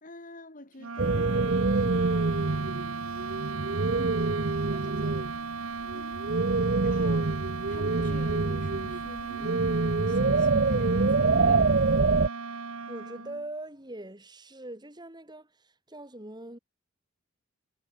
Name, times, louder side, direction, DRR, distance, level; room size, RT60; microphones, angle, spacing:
voice 1, 0.0-2.7 5.9-6.2 6.5-7.4 7.7-11.8, left 1 dB, 40° left, 3.8 m, -46 dB
sound 1, 0.8-13.5, right 4 dB, 85° right, 1.4 m, -37 dB
sound 2, 1.0-5.4 5.6-12.3, right 3 dB, 50° right, 0.8 m, -26 dB
voice 2, 3.6-5.3 12.9-16.6, right 1 dB, 20° right, 3.8 m, -43 dB
head